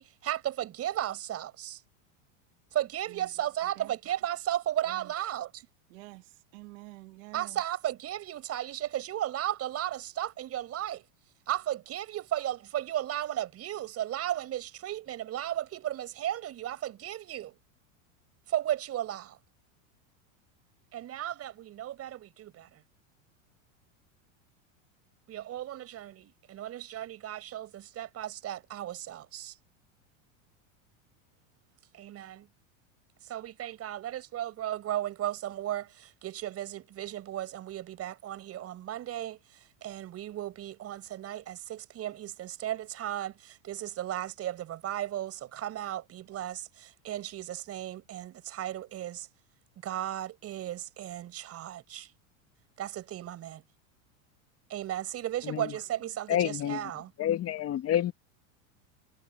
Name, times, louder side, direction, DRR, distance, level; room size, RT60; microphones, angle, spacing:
voice 1, 0.0-1.8 2.7-5.6 7.3-11.0 11.5-17.5 18.5-19.4 20.9-22.8 25.3-29.5 31.9-32.5 33.2-39.4 39.8-49.3 49.8-52.1 52.8-53.6 54.7-57.1, right 12 dB, 35° right, 5.7 m, -35 dB
voice 2, 5.9-7.6, right 23 dB, 70° right, 2.9 m, -48 dB
voice 3, 55.4-55.7 56.3-56.9 57.2-58.1, left 11 dB, 35° left, 2.6 m, -29 dB
supercardioid pair, 125°, 40 cm